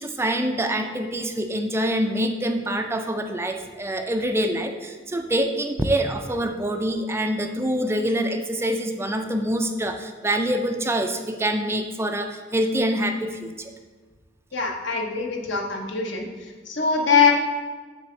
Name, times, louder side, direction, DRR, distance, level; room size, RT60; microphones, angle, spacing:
voice 1, 0.0-13.7, right 1 dB, 15° right, 5 dB, 0.4 m, -25 dB
voice 2, 14.5-16.3 16.7-17.3, left 5 dB, 65° left, 1 dB, 1.0 m, -22 dB
7.5 x 3.4 x 6.4 m, 1.4 s
head